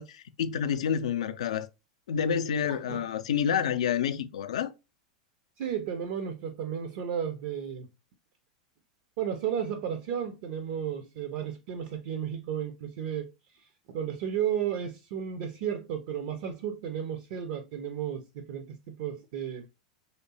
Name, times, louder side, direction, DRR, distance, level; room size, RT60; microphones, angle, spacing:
voice 1, 0.0-1.7 2.1-4.7, left 8 dB, 65° left, 0.3 m, -28 dB
voice 2, 2.7-3.0 5.6-7.9 9.2-13.7 13.9-19.7, right 9 dB, 50° right, 0.4 m, -33 dB
3.2 x 2.8 x 2.7 m
figure-of-eight pair, 90°, 4 cm